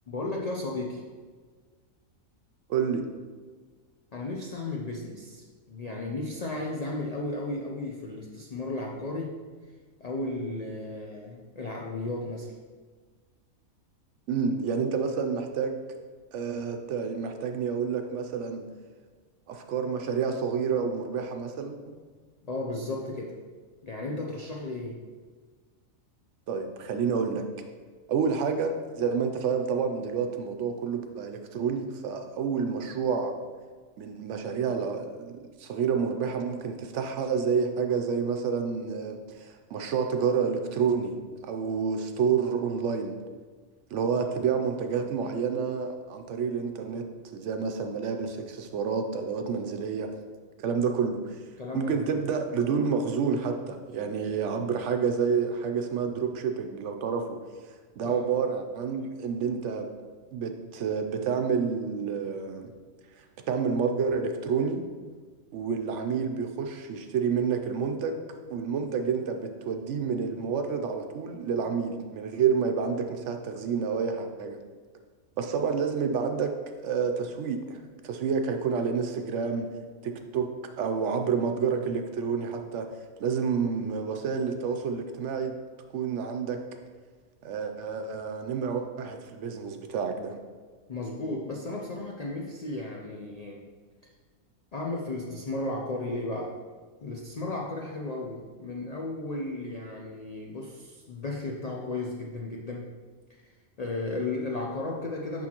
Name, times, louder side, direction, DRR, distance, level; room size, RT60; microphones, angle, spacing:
voice 1, 0.1-1.1 4.1-9.7 10.0-12.5 22.4-23.4 23.8-25.0 44.1-44.4 51.6-52.2 58.0-58.3 90.9-93.7 94.0-94.1 94.7-96.6 97.0-102.9 103.3-105.5, left 2 dB, 90° left, -1 dB, 0.3 m, -34 dB
voice 2, 2.7-3.1 14.3-15.8 16.3-18.7 19.5-21.9 26.5-27.5 28.1-33.4 34.0-41.2 41.4-43.2 43.9-47.1 47.3-50.1 50.6-51.4 51.7-57.4 58.0-59.9 60.3-62.7 63.5-64.9 65.5-68.2 68.5-74.6 75.4-76.5 76.8-79.7 80.0-80.5 80.8-82.9 83.2-85.5 85.9-86.6 87.4-90.4, right 6 dB, 65° right, 6 dB, 0.8 m, -29 dB
6.2 x 5.8 x 2.9 m, 1.5 s
omnidirectional pair, 1.5 m